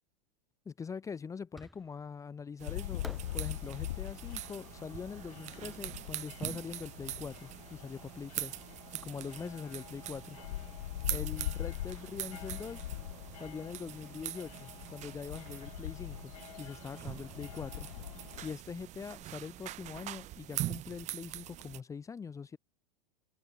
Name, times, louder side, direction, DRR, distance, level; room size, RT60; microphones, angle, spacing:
voice 1, 0.6-3.0 3.3-8.6 9.0-10.4 11.1-12.9 13.4-16.3 16.6-17.9 18.4-22.6, left 6 dB, 15° left, 1.1 m, -43 dB
Fireworks, 1.5-2.2 3.0-6.1, equal, ahead, 1.7 m, -54 dB
sound 1, 2.6-21.8, right 15 dB, 35° right, 2.6 m, -43 dB
sound 2, 2.7-18.5, left 14 dB, 60° left, 0.5 m, -43 dB
figure-of-eight pair, 90°, 21 cm